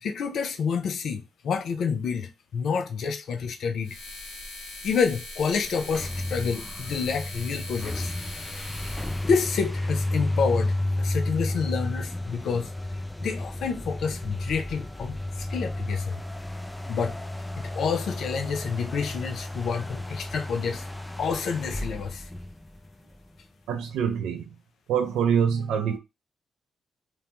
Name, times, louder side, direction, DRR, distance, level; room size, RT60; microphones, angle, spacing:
voice 1, 0.0-4.0 4.8-8.1 9.3-12.7 13.2-16.2 16.9-17.2 17.6-20.9 21.2-22.2, left 6 dB, 70° left, 0.4 m, -28 dB
sound 1, 3.8-9.3, left 2 dB, 85° left, 0.9 m, -40 dB
sound 2, 5.7-23.2, left 1 dB, 10° left, 0.3 m, -32 dB
voice 2, 23.7-24.5 24.9-26.0, right 7 dB, 85° right, 0.4 m, -25 dB
2.7 x 2.2 x 2.8 m
supercardioid pair, 55°, 0 cm